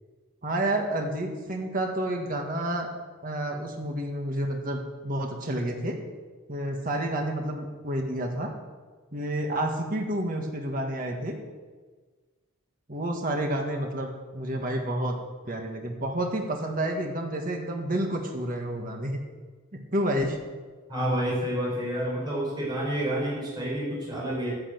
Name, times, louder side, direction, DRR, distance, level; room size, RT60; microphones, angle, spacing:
voice 1, 0.4-2.9 3.2-6.0 6.5-8.5 9.1-11.4 12.9-15.2 15.4-19.2 19.9-20.4, right 1 dB, 40° right, 2 dB, 1.7 m, -29 dB
voice 2, 20.9-24.5, right 1 dB, 20° right, -5 dB, 5.5 m, -29 dB
11.5 x 10.0 x 8.0 m, 1.4 s
head